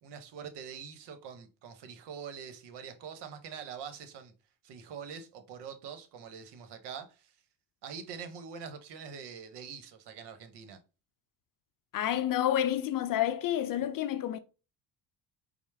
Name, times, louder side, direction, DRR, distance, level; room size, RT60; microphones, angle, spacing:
voice 1, 0.0-4.3 4.6-7.3 7.8-10.8, right 7 dB, 70° right, 0.9 m, -44 dB
voice 2, 11.9-14.4, left 11 dB, 50° left, 0.5 m, -29 dB
4.4 x 2.0 x 3.3 m
supercardioid pair, 70°, 42 cm